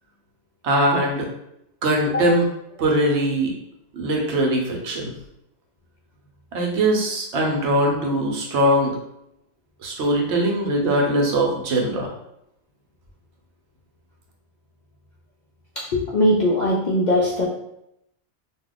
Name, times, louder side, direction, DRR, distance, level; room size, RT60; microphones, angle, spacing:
voice 1, 0.6-1.3 1.8-2.4 2.8-3.5 3.9-5.1 6.5-8.9 9.8-12.1, right 1 dB, 70° right, 0 dB, 0.9 m, -21 dB
voice 2, 15.8-17.5, left 1 dB, 60° left, -4 dB, 0.5 m, -20 dB
2.3 x 2.2 x 3.7 m, 0.80 s
omnidirectional pair, 1.2 m